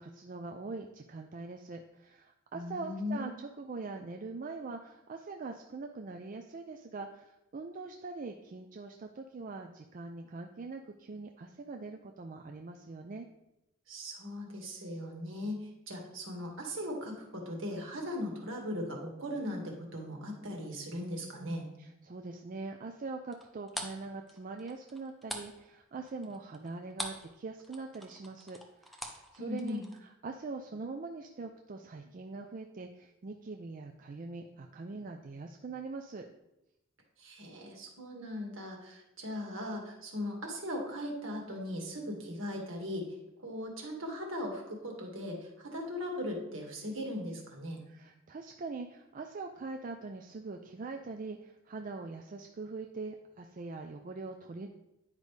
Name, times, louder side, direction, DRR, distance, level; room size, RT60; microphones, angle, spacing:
voice 1, 0.0-13.3 21.4-36.3 47.9-54.7, right 3 dB, 40° right, 4 dB, 0.4 m, -43 dB
voice 2, 2.5-3.4 13.9-21.7 29.4-29.8 37.2-43.1 43.4-47.8, left 1 dB, 70° right, 1 dB, 1.8 m, -38 dB
sound 1, 23.3-27.3 27.6-30.0, equal, ahead, 0.7 m, -43 dB
9.7 x 5.2 x 3.3 m, 0.90 s
head